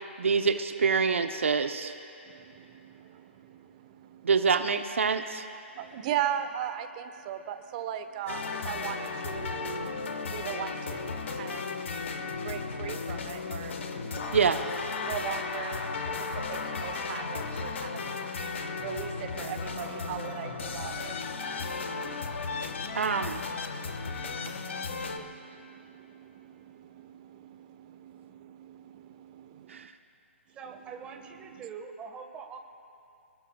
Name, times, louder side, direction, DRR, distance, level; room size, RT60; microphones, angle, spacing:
voice 1, 0.2-1.9 4.2-5.4 14.3-14.6 22.9-23.4 29.7-29.9, right 5 dB, 70° right, 7 dB, 0.9 m, -26 dB
voice 2, 2.2-4.3 5.7-14.4 15.0-23.1 24.0-29.9 31.5-31.6, right 10 dB, 35° right, 9 dB, 1.1 m, -39 dB
sound 1, 8.3-25.2, left 4 dB, 65° left, 1.5 m, -35 dB
voice 3, 30.5-32.6, right 6 dB, 15° right, 4 dB, 1.6 m, -43 dB
28.5 x 19.5 x 2.4 m, 2.6 s
figure-of-eight pair, 140°, 7 cm